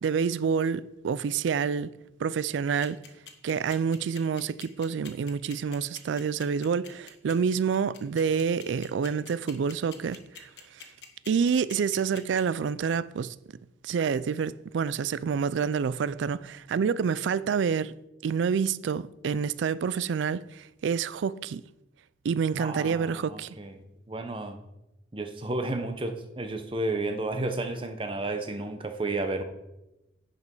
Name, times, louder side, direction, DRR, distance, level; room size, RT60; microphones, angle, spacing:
voice 1, 0.0-1.9 2.2-3.0 3.4-10.5 11.3-13.3 13.8-17.9 18.2-21.6 22.2-23.5, right 6 dB, 80° right, 0.3 m, -28 dB
sound 1, 2.8-12.4, left 8 dB, 65° left, 1.1 m, -45 dB
voice 2, 22.6-24.6 25.1-29.4, right 2 dB, 25° right, 0.7 m, -32 dB
9.3 x 5.2 x 5.4 m
head